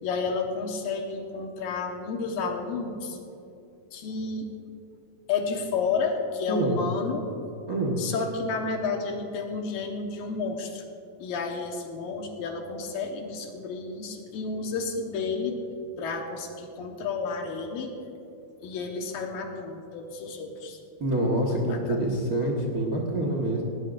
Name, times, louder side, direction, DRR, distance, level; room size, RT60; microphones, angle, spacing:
voice 1, 0.0-3.2 3.9-4.5 5.3-7.3 8.0-10.8 11.2-15.6 16.0-17.9 18.6-20.8 21.4-22.1, left 4 dB, 80° left, 2 dB, 3.1 m, -31 dB
voice 2, 6.5-6.8 7.7-8.0 21.0-23.6, right 1 dB, 50° right, -1 dB, 1.1 m, -26 dB
19.5 x 18.0 x 2.6 m, 2.7 s
omnidirectional pair, 4.0 m